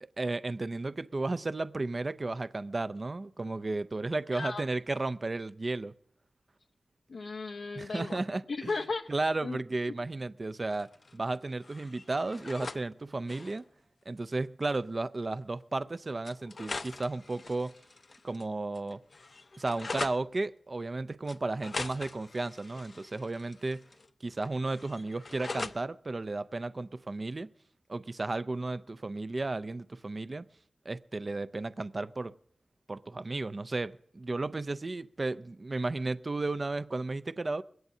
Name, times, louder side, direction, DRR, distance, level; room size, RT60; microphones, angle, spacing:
voice 1, 0.0-5.9 7.7-8.7 9.1-13.6 14.1-17.8 18.2-19.0 19.6-23.8 24.2-27.5 27.9-30.5 30.9-32.3 32.9-37.6, right 2 dB, 45° right, 0.5 m, -34 dB
voice 2, 4.3-4.6 7.1-8.2 8.5-9.1 9.4-9.6, left 3 dB, 85° left, 0.8 m, -35 dB
sound 1, 10.7-11.4 11.6-12.8 13.1-13.6 14.7-14.8 15.1-15.2 16.2-18.5 18.8-20.2 21.3-24.1 24.3-25.8, left 3 dB, 50° left, 0.6 m, -42 dB
22.0 x 17.0 x 2.7 m
cardioid pair, 60°, 0 cm